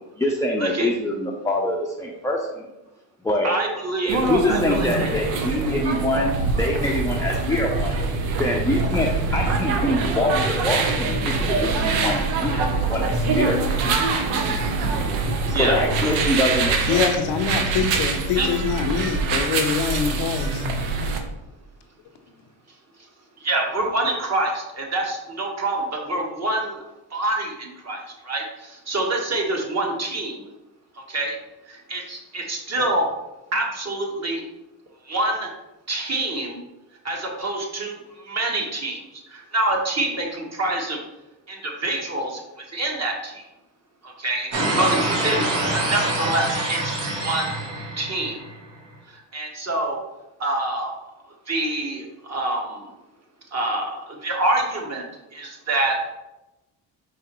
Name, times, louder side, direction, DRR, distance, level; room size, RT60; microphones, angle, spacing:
voice 1, 0.2-2.7 3.2-3.5 4.0-12.6 12.9-13.6 15.5-17.0, left 1 dB, 5° left, 0.5 m, -25 dB
voice 2, 3.4-4.2 4.5-5.1 15.5-15.8 18.3-18.5 23.4-26.8 27.1-30.5 31.1-31.3 31.7-33.1 33.5-34.4 35.1-35.5 35.9-36.6 37.0-38.0 38.3-39.0 39.3-41.0 41.5-42.4 42.7-43.4 44.0-45.6 45.8-46.9 47.2-47.6 48.0-48.4 49.3-50.0 50.4-51.0 51.5-52.9 53.5-55.9, right 2 dB, 35° right, 1.2 m, -26 dB
sound 1, 4.1-21.2, right 3 dB, 85° right, 0.7 m, -24 dB
voice 3, 16.8-20.7, left 6 dB, 70° left, 0.6 m, -24 dB
sound 2, 44.5-48.6, right 2 dB, 60° right, 1.3 m, -25 dB
4.7 x 3.2 x 3.0 m
supercardioid pair, 65°, 46 cm